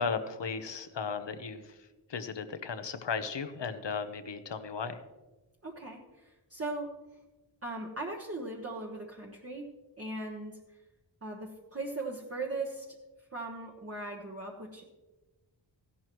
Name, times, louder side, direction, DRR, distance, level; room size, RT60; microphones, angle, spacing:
voice 1, 0.0-1.8 2.1-5.0, left 5 dB, 65° left, 10 dB, 1.0 m, -35 dB
voice 2, 5.6-6.9 7.6-9.7 10.0-10.6 11.2-13.0 13.3-14.8, right 2 dB, 30° right, -2 dB, 1.2 m, -39 dB
15.0 x 11.0 x 3.1 m, 1.1 s
wide cardioid pair, 90°, 47 cm